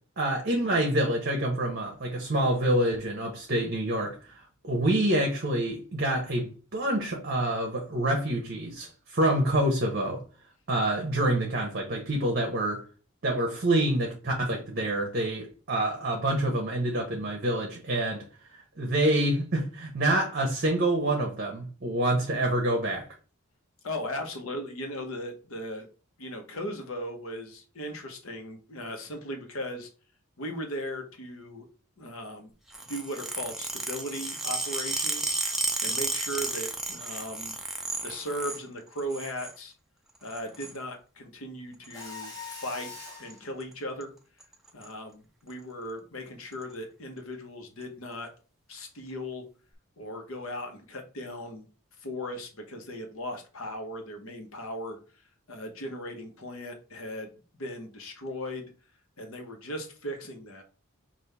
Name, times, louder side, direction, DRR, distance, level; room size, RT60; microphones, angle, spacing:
voice 1, 0.2-4.3 4.6-10.2 10.7-12.8 13.2-18.2 18.8-23.0, right 1 dB, 45° right, 0.8 m, -27 dB
voice 2, 23.8-25.9 26.2-29.9 30.4-31.7 32.0-32.5 32.9-37.5 38.0-39.7 40.2-42.9 43.2-44.1 44.7-48.3 48.7-49.4 50.0-51.7 52.0-55.0 55.5-58.7 59.2-60.6, equal, 75° left, 1.1 m, -37 dB
sound 1, 32.7-38.6 39.0-39.5 40.3-40.8 41.8-42.1 43.0-43.3 43.6-43.7 44.0-44.1 44.4-44.9 45.5-45.6 46.5-46.6, right 2 dB, ahead, 0.4 m, -33 dB
Mechanisms, 41.9-43.4, left 4 dB, 15° left, 1.0 m, -42 dB
5.6 x 2.6 x 3.4 m
head